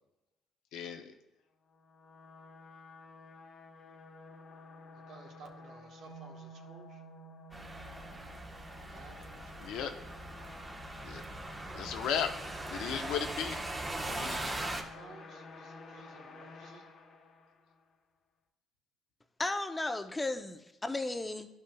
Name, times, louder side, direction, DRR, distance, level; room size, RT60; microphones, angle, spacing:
voice 1, 0.7-1.1 9.6-10.0 11.0-11.2 11.7-12.3 12.7-13.6 14.0-14.5, left 8 dB, 70° left, 7 dB, 0.7 m, -35 dB
sound 1, 1.6-17.9, left 3 dB, 55° left, 1.2 m, -53 dB
voice 2, 4.9-7.0 8.9-9.8 13.1-13.3 14.0-16.9, right 5 dB, 70° right, 1 dB, 1.3 m, -55 dB
sound 2, 6.0-10.3, right 10 dB, 85° right, 0.5 m, -55 dB
sound 3, 7.5-14.8, right 1 dB, 25° right, 1.2 m, -40 dB
voice 3, 19.4-21.5, left 2 dB, 20° left, 8 dB, 0.7 m, -34 dB
12.0 x 5.5 x 2.3 m, 0.97 s
hypercardioid pair, 55°, 0 cm